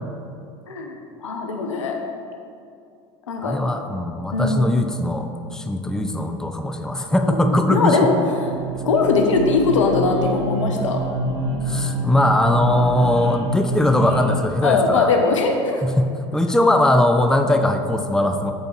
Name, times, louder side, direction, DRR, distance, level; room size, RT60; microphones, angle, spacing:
voice 1, 0.7-2.0 3.3-3.6 4.3-4.6 7.2-8.1 8.4-8.5 8.8-11.0 14.6-15.9, left 4 dB, 90° left, 3 dB, 1.0 m, -20 dB
voice 2, 3.4-8.0 11.7-15.1 15.8-16.1 16.3-18.5, left 1 dB, 5° left, 5 dB, 0.6 m, -20 dB
sound 1, 8.4-14.4, right 1 dB, 85° right, 1.4 m, -26 dB
8.2 x 4.4 x 6.0 m, 2.4 s
hypercardioid pair, 85°, 16 cm